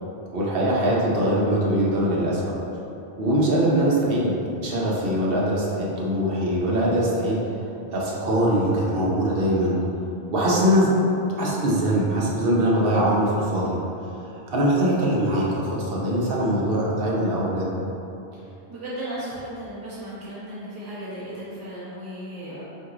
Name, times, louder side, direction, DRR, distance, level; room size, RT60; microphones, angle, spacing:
voice 1, 0.3-2.4 3.2-4.3 4.6-7.4 7.9-9.8 10.3-10.9 11.4-13.7 14.5-17.7, right 1 dB, 60° right, -5 dB, 0.9 m, -22 dB
voice 2, 18.7-22.6, right 1 dB, 20° right, -11 dB, 0.7 m, -35 dB
4.4 x 2.6 x 3.7 m, 2.9 s
omnidirectional pair, 1.2 m